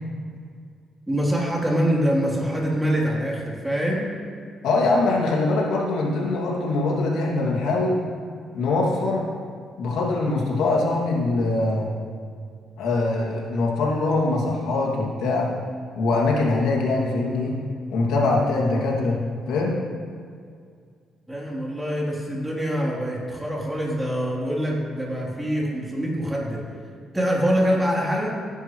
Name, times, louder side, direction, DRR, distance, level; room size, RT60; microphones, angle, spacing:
voice 1, 1.1-4.1 21.3-26.6 27.1-28.4, equal, 10° right, -4 dB, 3.2 m, -24 dB
voice 2, 4.6-8.0 8.5-9.2 9.8-12.0 12.8-15.5 16.0-17.5 17.9-19.2 19.5-19.8, left 2 dB, 85° left, -3 dB, 2.3 m, -23 dB
16.0 x 11.0 x 3.2 m, 2.2 s
cardioid pair, 90°, 0 cm